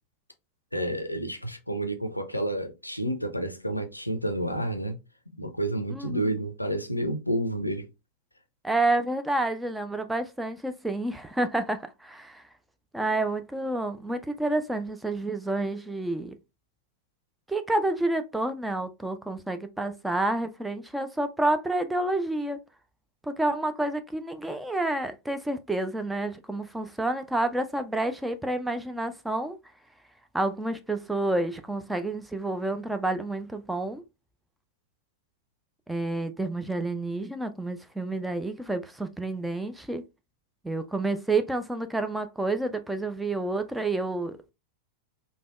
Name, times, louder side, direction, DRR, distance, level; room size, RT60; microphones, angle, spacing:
voice 1, 0.7-5.0 5.4-7.9, right 1 dB, 85° left, 0.4 m, -30 dB
voice 2, 5.9-6.3 8.6-12.4 12.9-16.3 17.5-22.6 23.2-29.6 30.3-34.0 35.9-40.0 40.6-44.4, right 2 dB, 5° right, 0.3 m, -29 dB
3.3 x 2.1 x 2.3 m
figure-of-eight pair, 90°, 0 cm